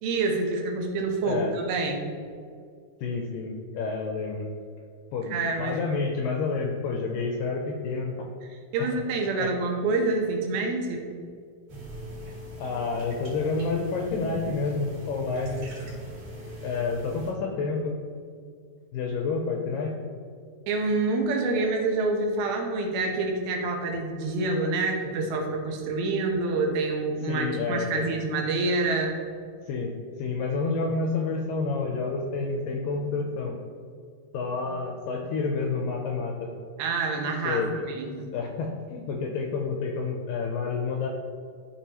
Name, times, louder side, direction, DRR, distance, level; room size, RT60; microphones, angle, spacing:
voice 1, 0.0-2.1 5.3-5.8 8.7-11.1 20.7-29.1 36.8-38.3, right 3 dB, 75° right, 1 dB, 2.8 m, -27 dB
voice 2, 3.0-4.5 5.1-8.2 8.8-8.9 9.4-9.5 12.6-15.7 16.6-17.9 18.9-19.9 27.3-28.1 29.7-29.9 30.2-33.6 34.3-36.5 37.5-37.7 38.3-41.1, left 4 dB, 80° left, 1 dB, 2.0 m, -29 dB
sound 1, 11.7-17.3, equal, 60° right, 3.4 m, -41 dB
12.5 x 4.7 x 3.0 m, 2.2 s
omnidirectional pair, 4.5 m